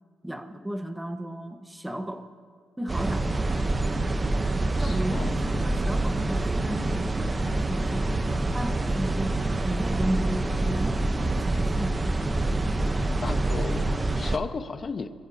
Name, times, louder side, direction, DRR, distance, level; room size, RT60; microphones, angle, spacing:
voice 1, 0.2-2.3 2.8-3.5 4.8-9.3 9.6-12.0, right 1 dB, 5° right, 7 dB, 1.1 m, -34 dB
sound 1, 2.9-14.4, right 2 dB, 25° right, 0.9 m, -26 dB
voice 2, 4.8-5.4 13.2-15.1, left 4 dB, 40° left, 8 dB, 1.1 m, -34 dB
27.5 x 15.0 x 2.8 m, 2.2 s
cardioid pair, 90°, 0 cm